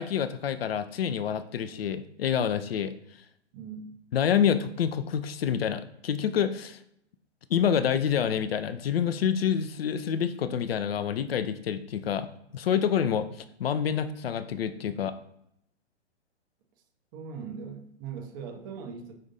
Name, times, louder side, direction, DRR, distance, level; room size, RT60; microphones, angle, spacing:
voice 1, 0.0-2.9 4.1-6.8 7.5-12.3 12.5-13.3 13.6-15.1, left 8 dB, 60° left, 12 dB, 0.4 m, -27 dB
voice 2, 3.5-3.9 17.1-19.1, right 6 dB, 20° right, 4 dB, 0.4 m, -40 dB
5.2 x 2.5 x 3.9 m, 0.77 s
figure-of-eight pair, 120°, 35 cm